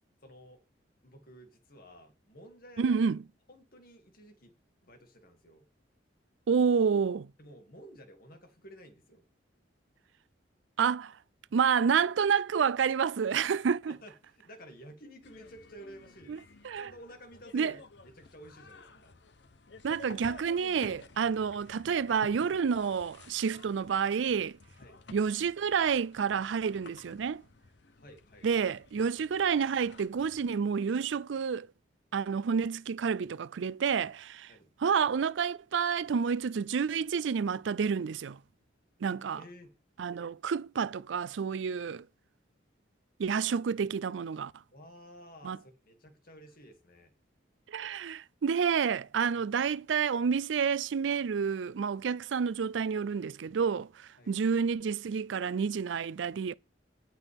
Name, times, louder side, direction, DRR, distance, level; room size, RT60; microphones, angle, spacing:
voice 1, 0.2-0.6 1.0-3.0 3.5-4.6 4.8-5.6 7.4-9.2 13.9-16.4 16.7-19.1 24.8-25.0 28.0-28.5 34.5-34.7 39.3-39.7 44.7-47.1 54.2-54.3, equal, 50° left, 2.3 m, -52 dB
voice 2, 2.8-3.2 6.5-7.3 10.8-11.1 11.5-14.0 16.3-16.4 16.6-16.9 17.5-17.7 19.8-24.6 25.1-27.4 28.4-31.7 32.1-34.5 34.8-38.4 39.0-39.4 40.0-42.0 43.2-44.5 45.4-45.6 47.7-56.5, right 6 dB, 80° right, 0.4 m, -29 dB
sound 1, 15.2-30.6, left 3 dB, 70° left, 0.9 m, -54 dB
18.0 x 5.9 x 3.6 m
head